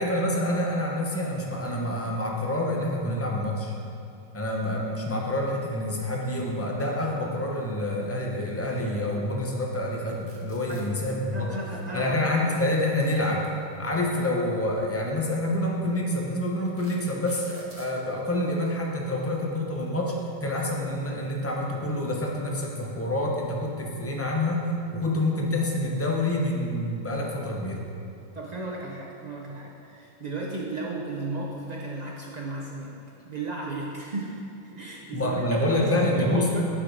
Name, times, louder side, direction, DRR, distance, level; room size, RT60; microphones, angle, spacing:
voice 1, 0.0-3.7 4.3-11.5 11.9-13.4 13.8-24.6 24.9-27.8 35.1-36.5, left 1 dB, 25° left, -2 dB, 0.3 m, -27 dB
sound 1, 10.1-10.8 12.3-13.8 14.9-15.1 15.7-15.8 16.4-17.9, right 2 dB, 30° right, 0.8 m, -51 dB
voice 2, 11.3-12.3 28.3-33.0 33.2-36.6, right 2 dB, 60° right, -3 dB, 0.4 m, -34 dB
11.0 x 4.7 x 2.6 m, 2.6 s
omnidirectional pair, 1.4 m